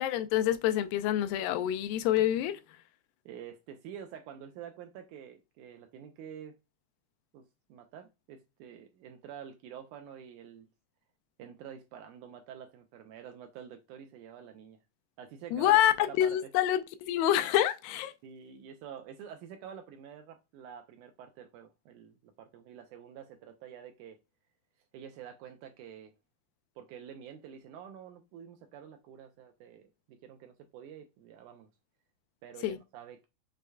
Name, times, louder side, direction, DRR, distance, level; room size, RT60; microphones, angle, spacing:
voice 1, 0.0-2.6 15.5-18.1 32.6-32.8, left 12 dB, 90° left, 2.3 m, -27 dB
voice 2, 3.2-6.6 7.3-7.4 7.7-10.7 11.4-14.8 15.2-16.5 18.2-24.2 24.9-26.1 26.8-31.7 32.4-33.3, right 8 dB, 80° right, 1.8 m, -48 dB
6.4 x 3.2 x 2.3 m
omnidirectional pair, 3.9 m